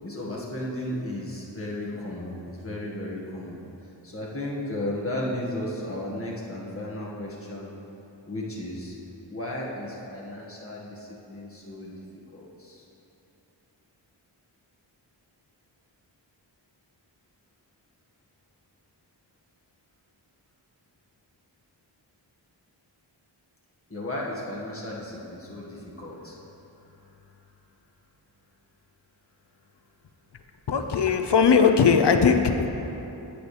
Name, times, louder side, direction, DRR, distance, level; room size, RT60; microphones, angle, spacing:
voice 1, 0.0-7.7 8.3-8.9 9.3-11.9 12.3-12.9 23.9-27.5, left 1 dB, 30° left, -5 dB, 1.8 m, -35 dB
voice 2, 30.7-32.9, left 6 dB, 65° left, 7 dB, 0.7 m, -20 dB
9.9 x 9.1 x 3.3 m, 3.0 s
cardioid pair, 45°, 45 cm